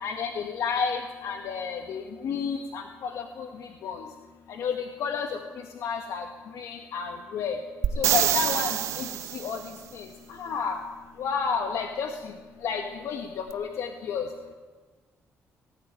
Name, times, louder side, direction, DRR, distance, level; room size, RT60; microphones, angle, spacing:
voice 1, 0.0-3.5 3.8-4.0 4.6-4.7 5.0-5.3 5.8-6.2 6.6-7.6 8.0-9.0 9.4-9.6 10.0-10.1 10.4-10.8 11.2-12.1 12.6-14.2, left 6 dB, 75° left, 4 dB, 1.8 m, -30 dB
sound 1, 7.8-9.7 13.5-13.6, right 11 dB, 80° right, 1.0 m, -26 dB
18.5 x 18.0 x 9.1 m, 1.3 s
cardioid pair, 120°, 5 cm